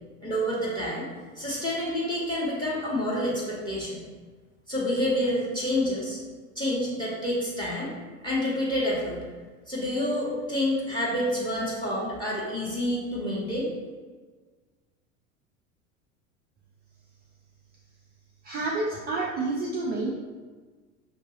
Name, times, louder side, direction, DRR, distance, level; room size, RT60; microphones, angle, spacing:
voice 1, 0.2-1.1 1.4-4.0 4.7-6.2 6.5-7.9 8.2-9.2 9.7-13.7, left 1 dB, 10° left, -5 dB, 1.2 m, -28 dB
voice 2, 18.4-20.2, right 2 dB, 25° right, -3 dB, 0.4 m, -29 dB
5.9 x 2.9 x 2.9 m, 1.4 s
figure-of-eight pair, 80°, 42 cm